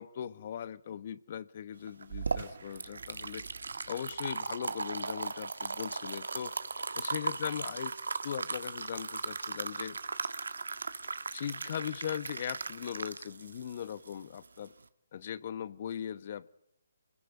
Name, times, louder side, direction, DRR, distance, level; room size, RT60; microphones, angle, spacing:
voice 1, 0.0-3.4 3.9-6.5 6.9-7.9 8.2-10.0 11.3-14.7 15.1-16.5, left 9 dB, 45° left, 1.1 m, -39 dB
sound 1, 1.9-14.9, right 4 dB, 75° right, 1.7 m, -38 dB
sound 2, 2.0-6.9, right 7 dB, 55° right, 1.4 m, -48 dB
27.0 x 21.0 x 9.7 m
figure-of-eight pair, 145°, 0 cm